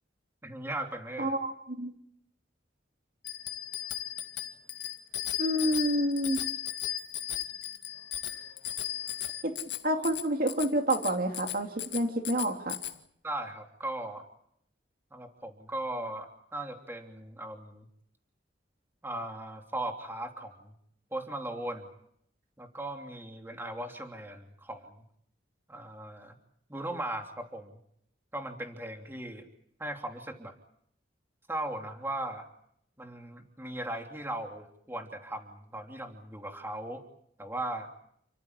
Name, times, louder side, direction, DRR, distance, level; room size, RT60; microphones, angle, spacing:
voice 1, 0.4-1.3 13.2-14.2 15.1-17.9 19.0-20.7 21.1-21.9 22.6-25.0 25.7-26.3 26.7-27.8 28.3-29.5 29.8-30.5 31.5-32.5 33.0-37.0 37.4-37.9, right 1 dB, 10° right, 3 dB, 3.1 m, -38 dB
voice 2, 1.2-1.9 5.4-6.4 9.4-9.5 9.8-12.8, right 1 dB, 50° right, 3 dB, 2.5 m, -28 dB
Bicycle bell, 3.2-13.0, left 12 dB, 70° left, 2.1 m, -36 dB
30.0 x 15.0 x 9.8 m, 0.70 s
head